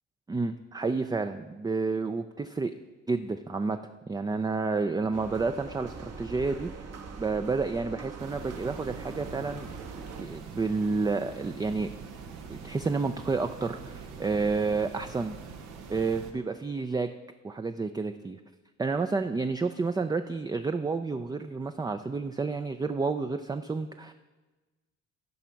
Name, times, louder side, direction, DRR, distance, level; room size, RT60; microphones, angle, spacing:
voice 1, 0.3-2.7 3.1-3.8 4.1-6.7 7.2-9.7 10.2-11.9 12.5-15.4 15.9-17.1 17.4-18.4 18.8-24.1, right 4 dB, 15° right, 8 dB, 0.4 m, -30 dB
sound 1, 5.1-10.2, right 4 dB, 55° right, 1.2 m, -42 dB
sound 2, 8.2-16.3, right 5 dB, 90° right, 1.1 m, -44 dB
13.5 x 5.1 x 5.8 m, 1.2 s
cardioid pair, 90°, 30 cm